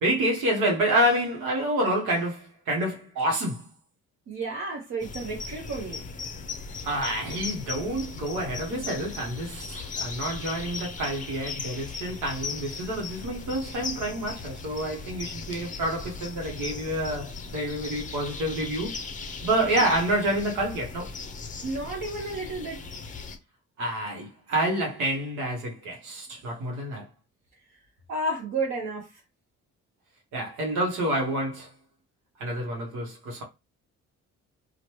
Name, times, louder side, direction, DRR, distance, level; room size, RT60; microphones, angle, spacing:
voice 1, 0.0-3.7 6.8-19.0 19.4-21.1 23.8-27.0 30.3-31.7 32.4-33.4, right 1 dB, 90° right, 0.9 m, -28 dB
voice 2, 4.3-6.1 21.6-22.8 28.1-29.2, right 2 dB, 60° right, 0.9 m, -32 dB
sound 1, 5.0-23.4, left 4 dB, 25° left, 0.5 m, -38 dB
3.0 x 2.1 x 2.9 m
cardioid pair, 90°, 30 cm